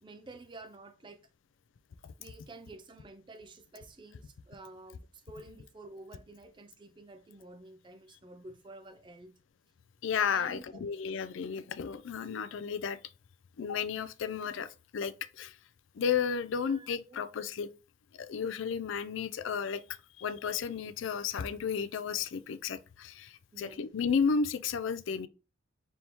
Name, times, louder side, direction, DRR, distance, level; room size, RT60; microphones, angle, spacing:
voice 1, 0.0-1.2 2.2-9.3 10.3-10.8 16.6-17.2 23.5-23.9, right 2 dB, 25° right, 0.4 m, -50 dB
voice 2, 10.0-13.0 13.6-14.7 14.9-15.5 16.0-17.7 18.1-19.8 20.2-25.3, left 6 dB, 70° left, 0.4 m, -33 dB
4.2 x 3.4 x 2.9 m
head